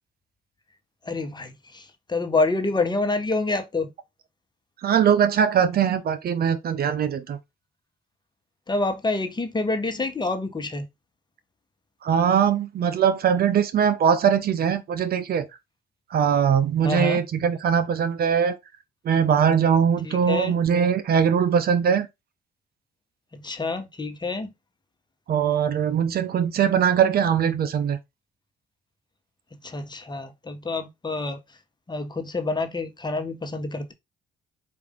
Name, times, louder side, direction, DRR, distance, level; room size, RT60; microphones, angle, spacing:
voice 1, 1.1-3.9 8.7-10.9 16.8-17.2 20.0-20.5 23.3-24.5 29.6-31.4 31.9-33.9, left 3 dB, 25° left, 1.0 m, -27 dB
voice 2, 4.8-7.4 12.0-15.5 16.1-18.6 19.0-22.1 25.3-28.0, right 8 dB, 55° right, 0.6 m, -21 dB
4.7 x 2.6 x 3.6 m
supercardioid pair, 60°, 18 cm